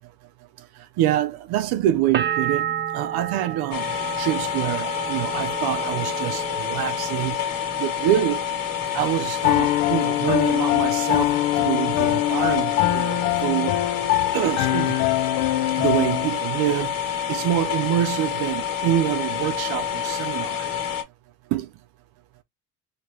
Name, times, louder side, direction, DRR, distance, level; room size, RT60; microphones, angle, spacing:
voice 1, 1.0-2.7 2.9-3.8 4.2-7.4 7.8-8.4 8.9-11.3 11.6-13.7 14.3-14.9 15.8-20.6 21.5-21.7, right 12 dB, 70° right, 0.6 m, -25 dB
sound 1, 2.1-7.8 8.1-8.8, right 9 dB, 30° right, 0.5 m, -31 dB
sound 2, 3.7-21.0, left 8 dB, 60° left, 1.6 m, -28 dB
Piano, 9.4-16.3, left 16 dB, 75° left, 0.5 m, -23 dB
2.9 x 2.8 x 3.1 m
supercardioid pair, 85°, 38 cm